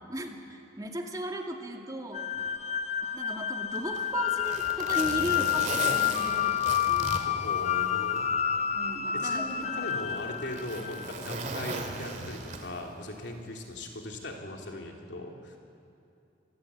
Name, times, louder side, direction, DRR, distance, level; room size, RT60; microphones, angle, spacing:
voice 1, 0.1-2.3 3.1-7.1 8.7-9.8 13.3-13.4, right 1 dB, 20° right, 2 dB, 2.0 m, -37 dB
sound 1, 2.1-11.3, left 10 dB, 35° left, 0.7 m, -29 dB
Zipper (clothing), 3.8-8.2 8.6-8.7 9.5-13.0 14.1-14.3, right 3 dB, 40° right, 2.5 m, -37 dB
voice 2, 7.3-8.3 9.1-15.6, left 1 dB, 70° left, 1 dB, 3.4 m, -39 dB
26.5 x 19.5 x 8.6 m, 2.7 s
head